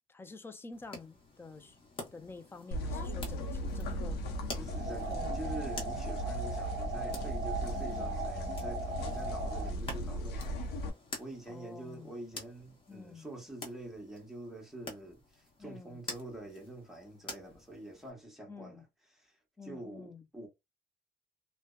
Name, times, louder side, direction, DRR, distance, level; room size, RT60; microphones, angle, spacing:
voice 1, 0.1-1.8 2.1-4.2 5.1-5.5 11.5-12.1 12.9-13.3 15.6-16.0 18.5-18.8 19.6-20.2, left 4 dB, 15° left, 0.4 m, -49 dB
sound 1, 0.7-18.1, left 2 dB, 30° left, 0.9 m, -49 dB
sound 2, 2.7-10.9, equal, 75° left, 0.7 m, -37 dB
voice 2, 4.6-10.7 11.2-18.9 19.1-19.4 19.6-20.5, right 1 dB, ahead, 1.0 m, -46 dB
sound 3, 4.7-9.7, right 3 dB, 45° right, 0.6 m, -39 dB
2.6 x 2.1 x 2.2 m
cardioid pair, 110°, 17 cm